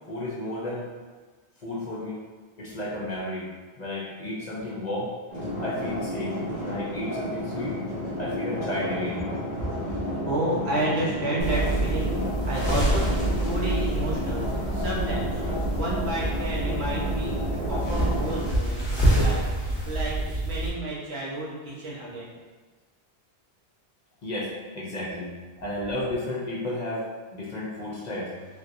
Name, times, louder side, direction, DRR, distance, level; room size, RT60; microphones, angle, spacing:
voice 1, 0.1-0.9 1.6-2.2 2.6-3.5 3.8-5.1 5.6-6.4 6.6-7.7 8.2-9.2 24.2-25.3 25.6-27.0 27.3-28.3, left 1 dB, 50° left, -5 dB, 0.6 m, -32 dB
sound 1, 5.3-18.4, left 1 dB, 40° right, 1.1 m, -32 dB
voice 2, 9.9-12.1 12.5-15.4 15.7-17.4 17.6-22.3, right 1 dB, 80° right, -6 dB, 1.1 m, -31 dB
sound 2, 11.4-20.7, right 1 dB, 25° left, 0.9 m, -27 dB
3.3 x 2.8 x 2.5 m, 1.4 s
omnidirectional pair, 1.1 m